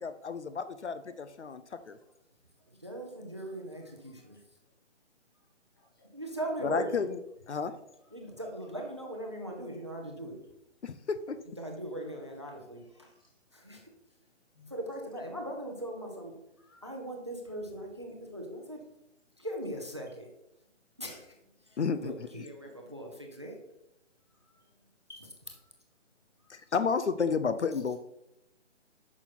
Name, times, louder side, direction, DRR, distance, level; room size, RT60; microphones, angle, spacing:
voice 1, 0.0-1.6 1.9-2.0 6.6-7.2 7.5-7.7 10.8-11.4 21.8-22.4 26.5-28.0, left 5 dB, 65° left, 12 dB, 0.7 m, -31 dB
voice 2, 2.8-4.4 6.1-7.1 8.1-10.4 11.6-13.1 13.5-13.9 14.7-16.3 16.8-18.8 19.4-20.3 21.0-21.3 21.7-23.5, right 1 dB, 25° right, 2 dB, 0.7 m, -39 dB
voice 3, 4.0-4.4 5.3-6.1 12.0-12.6 12.9-13.3 13.7-13.9 14.5-14.7 16.6-16.8 21.4-22.3 22.6-22.9 24.3-25.6 26.4-26.6, left 2 dB, 20° left, -2 dB, 1.1 m, -62 dB
8.7 x 6.1 x 4.1 m, 0.85 s
hypercardioid pair, 180°, 37 cm